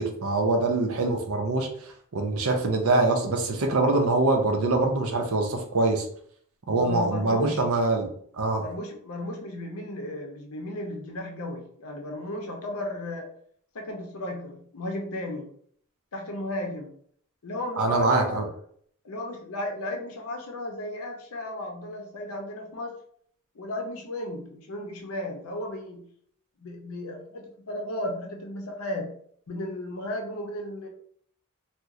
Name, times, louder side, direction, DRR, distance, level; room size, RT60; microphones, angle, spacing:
voice 1, 0.0-1.7 2.1-6.1 6.7-8.6 17.8-18.5, right 2 dB, 65° right, 3 dB, 0.6 m, -24 dB
voice 2, 6.7-7.6 8.6-13.3 13.7-15.5 16.1-16.9 17.4-18.5 19.0-23.0 23.5-26.0 26.6-29.1 29.5-30.9, left 1 dB, 65° left, 2 dB, 0.6 m, -35 dB
2.9 x 2.0 x 3.6 m, 0.62 s
head